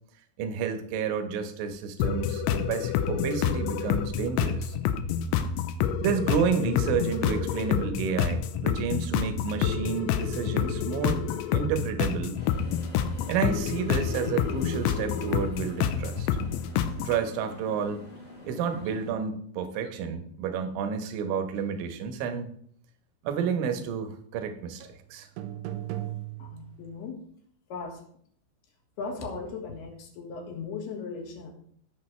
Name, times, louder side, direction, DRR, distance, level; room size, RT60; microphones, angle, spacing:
voice 1, 0.4-4.7 6.0-11.2 11.5-12.4 13.3-16.3 17.0-18.0 18.4-22.5 23.2-24.8 25.1-25.3, right 6 dB, 75° right, 7 dB, 3.2 m, -30 dB
sound 1, 2.0-17.2, left 8 dB, 90° left, 2.6 m, -28 dB
sound 2, 12.3-19.1, left 2 dB, 40° left, 0.5 m, -46 dB
sound 3, 24.8-25.0 25.4-27.0, right 13 dB, 90° right, 3.5 m, -36 dB
voice 2, 26.4-27.2 27.7-28.0 29.0-31.5, left 4 dB, 65° left, 2 dB, 3.0 m, -37 dB
19.0 x 6.9 x 3.3 m, 0.63 s
omnidirectional pair, 6.0 m